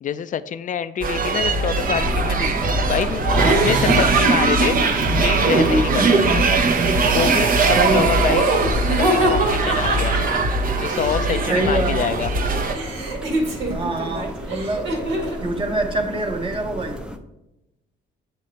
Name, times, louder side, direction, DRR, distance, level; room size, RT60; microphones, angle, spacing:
voice 1, 0.0-2.6 2.9-6.6 7.1-8.5 8.9-10.3 10.8-12.3, left 8 dB, 40° left, 14 dB, 0.4 m, -26 dB
sound 1, 1.0-12.7, right 3 dB, 45° right, 0.8 m, -20 dB
Cold Snowy wind, 1.7-17.2, equal, 5° right, 0.5 m, -33 dB
Laughter, 3.3-4.3 5.4-6.4 8.2-12.1 12.3-15.4, right 1 dB, 80° right, 1.7 m, -25 dB
voice 2, 3.8-4.4 6.0-6.3 7.7-8.1 11.5-11.9 13.7-14.9 15.4-17.0, right 2 dB, 25° right, 2 dB, 1.1 m, -25 dB
8.1 x 3.2 x 4.1 m, 0.93 s
cardioid pair, 90°, 20 cm